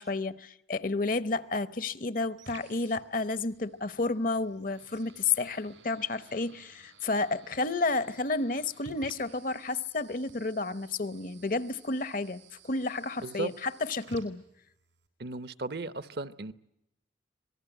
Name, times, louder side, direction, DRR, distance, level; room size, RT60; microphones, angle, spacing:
voice 1, 0.0-14.4, left 3 dB, 45° left, 0.8 m, -31 dB
sound 1, 1.1-15.1, right 4 dB, 85° right, 4.6 m, -55 dB
voice 2, 15.2-16.5, right 2 dB, 55° right, 0.9 m, -35 dB
26.0 x 19.5 x 9.1 m
head